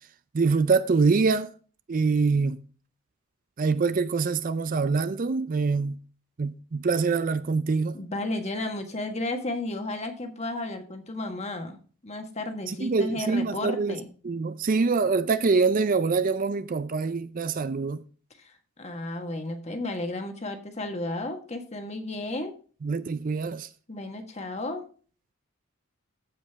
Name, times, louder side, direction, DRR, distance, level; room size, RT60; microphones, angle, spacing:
voice 1, 0.3-1.5 1.9-2.6 3.6-6.0 6.4-8.0 12.7-14.0 14.2-18.0 22.8-23.7, right 4 dB, 40° right, 0.4 m, -25 dB
voice 2, 7.9-11.8 12.0-14.1 18.4-22.5 23.9-24.8, left 2 dB, 30° left, 1.5 m, -33 dB
15.0 x 5.2 x 3.5 m
head